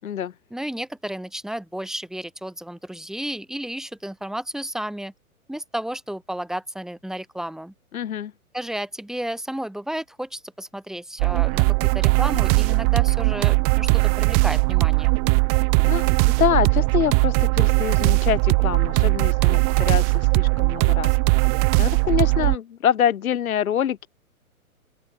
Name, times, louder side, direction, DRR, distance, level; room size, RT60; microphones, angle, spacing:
voice 1, 0.5-5.1 5.5-7.7 8.5-15.1, right 1 dB, ahead, 5.5 m, -32 dB
voice 2, 7.9-8.3 15.8-16.0 16.4-21.2 21.8-24.1, left 9 dB, 70° left, 0.8 m, -25 dB
sound 1, 11.2-22.6, right 33 dB, 25° right, 1.1 m, -19 dB
open air
figure-of-eight pair, 125°, 44 cm